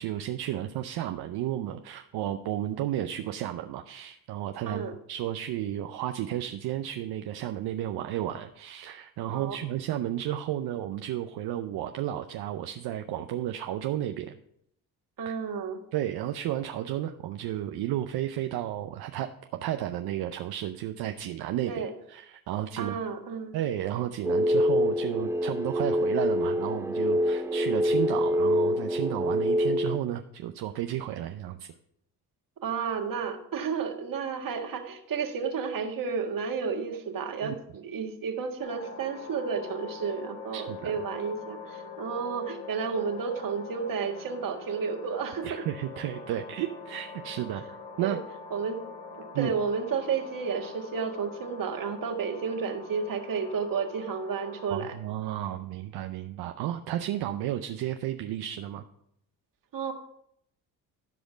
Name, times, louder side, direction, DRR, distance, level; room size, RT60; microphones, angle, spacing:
voice 1, 0.0-14.4 15.9-19.3 19.6-23.0 23.5-31.7 37.4-37.6 40.5-41.0 45.4-47.6 48.0-48.2 49.3-49.5 54.7-58.8, right 12 dB, 75° right, 7 dB, 0.7 m, -32 dB
voice 2, 15.2-15.8 21.7-21.9 22.8-23.6 32.6-45.6 48.0-48.2 48.5-48.8 49.4-55.0 59.7-59.9, right 6 dB, 55° right, 4 dB, 1.7 m, -32 dB
sound 1, 24.2-30.0, equal, 10° right, 0.3 m, -26 dB
sound 2, 38.6-54.7, left 4 dB, 65° left, 4.1 m, -44 dB
14.5 x 5.1 x 5.1 m, 0.73 s
supercardioid pair, 65°, 39 cm